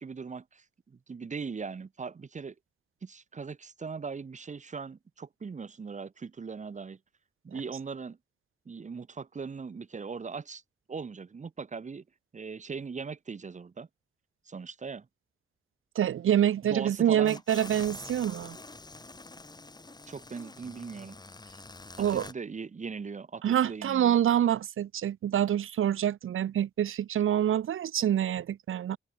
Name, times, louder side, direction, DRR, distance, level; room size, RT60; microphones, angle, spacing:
voice 1, 0.0-2.5 3.0-7.0 7.4-8.2 8.7-10.6 10.9-12.0 12.3-13.9 14.5-15.1 16.6-17.6 20.1-21.2 22.0-24.2, right 5 dB, 35° right, 1.0 m, -40 dB
voice 2, 16.0-18.6 22.0-22.3 23.4-29.0, right 10 dB, 90° right, 0.8 m, -26 dB
sound 1, 17.3-22.3, left 2 dB, 20° left, 2.0 m, -46 dB
wide cardioid pair, 120°, 21 cm